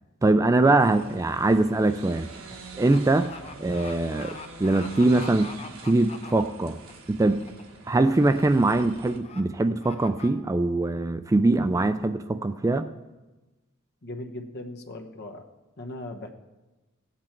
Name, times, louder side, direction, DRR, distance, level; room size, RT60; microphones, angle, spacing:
voice 1, 0.2-2.3 2.8-3.3 3.6-4.3 4.6-5.5 5.8-6.8 7.1-7.5 7.9-12.9, right 2 dB, 15° right, 10 dB, 0.3 m, -22 dB
sound 1, 0.8-1.1 1.4-6.9 7.3-7.6 7.9-8.4 8.7-8.8 9.2-9.4 9.8-10.3, left 4 dB, 30° left, 0.9 m, -43 dB
sound 2, 0.8-9.2, right 3 dB, 80° right, 1.5 m, -45 dB
voice 2, 14.0-15.5 15.8-16.3, left 1 dB, 50° left, 4 dB, 1.1 m, -38 dB
16.5 x 8.5 x 4.4 m, 1.1 s
head